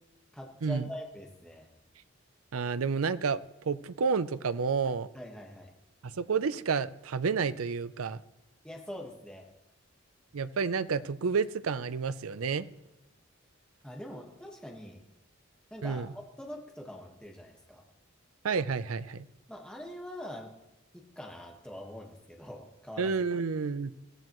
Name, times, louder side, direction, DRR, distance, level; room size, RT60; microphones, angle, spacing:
voice 1, 0.3-1.7 5.1-5.7 8.6-9.5 13.8-15.0 15.7-17.8 19.5-20.5 20.9-23.1, equal, 5° left, 0 dB, 1.4 m, -43 dB
voice 2, 2.5-5.1 6.0-8.2 10.3-12.7 15.8-16.1 18.4-19.3 23.0-23.9, right 5 dB, 85° right, 15 dB, 0.6 m, -30 dB
21.5 x 15.5 x 3.1 m, 0.99 s
head